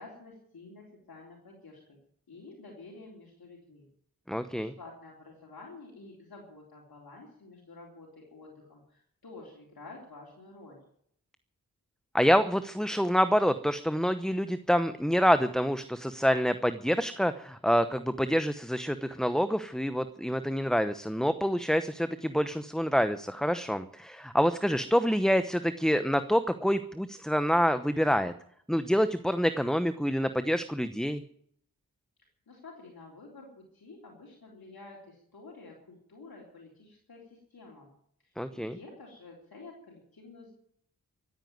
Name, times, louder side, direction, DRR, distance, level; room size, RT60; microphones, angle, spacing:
voice 1, 0.0-2.0 2.3-3.9 4.5-10.8 32.5-37.9 38.2-40.5, left 3 dB, 80° left, -2 dB, 3.8 m, -50 dB
voice 2, 4.3-4.7 12.1-28.3 28.7-31.2 38.4-38.8, equal, ahead, 11 dB, 0.9 m, -27 dB
14.5 x 9.4 x 9.4 m, 0.66 s
cardioid pair, 40°, 36 cm